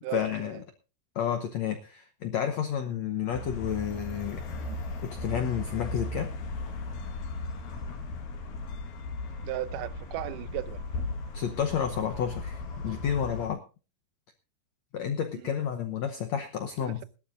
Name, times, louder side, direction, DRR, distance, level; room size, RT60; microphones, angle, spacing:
voice 1, 0.1-0.6 1.1-4.6 5.0-6.3 11.3-13.6 14.9-17.0, left 8 dB, 90° left, 1.5 m, -31 dB
sound 1, 3.3-13.5, left 2 dB, 70° left, 3.7 m, -37 dB
voice 2, 9.4-10.8 16.8-17.0, right 15 dB, 80° right, 1.9 m, -36 dB
21.0 x 12.5 x 2.6 m
omnidirectional pair, 4.5 m